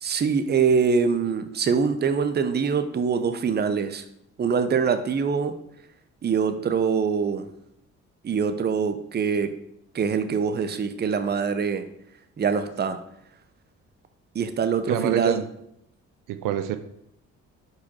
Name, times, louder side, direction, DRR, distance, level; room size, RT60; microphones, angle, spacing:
voice 1, 0.0-4.0 4.4-5.5 6.2-7.5 8.2-9.5 9.9-11.8 12.4-13.0 14.3-15.4, right 6 dB, 30° right, 9 dB, 0.6 m, -24 dB
voice 2, 14.9-15.4 16.3-16.8, right 10 dB, 80° right, 9 dB, 0.5 m, -26 dB
4.8 x 4.7 x 4.2 m, 0.75 s
cardioid pair, 80°, 32 cm